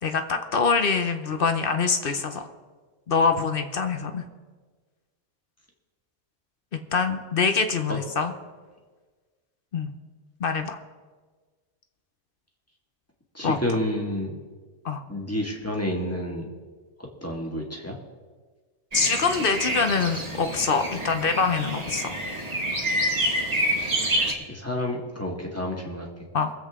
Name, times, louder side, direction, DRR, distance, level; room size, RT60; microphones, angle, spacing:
voice 1, 0.0-2.5 3.1-4.2 6.7-8.3 9.7-9.9 10.4-10.8 13.4-13.6 14.8-15.0 18.9-22.2 26.3-26.5, left 5 dB, 50° left, 8 dB, 0.8 m, -24 dB
voice 2, 13.3-14.4 15.1-16.5 17.0-18.0 24.5-26.2, left 1 dB, 10° left, -1 dB, 1.8 m, -30 dB
sound 1, 18.9-24.3, right 1 dB, 30° right, 1.5 m, -27 dB
22.5 x 7.8 x 3.7 m, 1.4 s
omnidirectional pair, 1.5 m